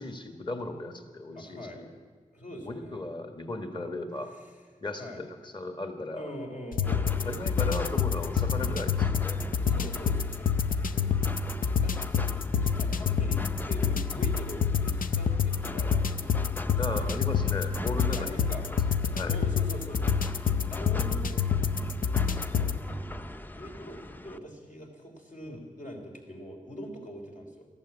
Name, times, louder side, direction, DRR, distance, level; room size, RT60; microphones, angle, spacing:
voice 1, 0.0-1.9 2.6-4.3 4.8-6.3 7.2-9.4 10.9-11.3 16.8-18.4 19.1-19.4 20.5-20.8 25.4-25.6, left 2 dB, 35° left, 6 dB, 1.7 m, -36 dB
voice 2, 1.3-1.8 2.3-3.1 4.3-4.6 5.0-5.2 6.1-7.4 9.6-11.1 11.8-12.0 12.3-17.2 18.1-18.7 19.1-20.2 20.7-21.5 22.5-22.8 23.5-27.7, equal, 65° left, 1 dB, 3.3 m, -43 dB
sound 1, 6.7-22.8, left 7 dB, 85° left, 0.6 m, -28 dB
sound 2, 6.8-24.4, left 1 dB, 15° left, 0.5 m, -41 dB
14.5 x 11.5 x 8.5 m, 1.5 s
wide cardioid pair, 65°, 14 cm